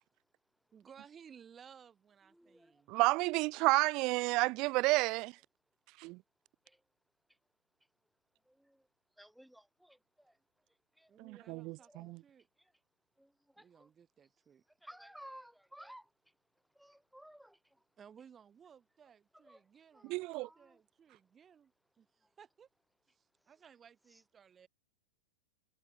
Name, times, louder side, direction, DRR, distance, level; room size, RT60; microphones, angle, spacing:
voice 1, 0.7-3.0 11.1-12.5 13.6-14.6 18.0-21.7 22.0-22.7 23.1-24.7, right 7 dB, 25° right, 3.5 m, -59 dB
voice 2, 2.9-5.3 6.0-6.2 11.2-12.2 20.0-20.5, right 24 dB, 45° right, 0.4 m, -31 dB
voice 3, 9.2-9.6 14.8-16.0 16.8-17.5, equal, ahead, 0.8 m, -52 dB
hypercardioid pair, 100°, 0 cm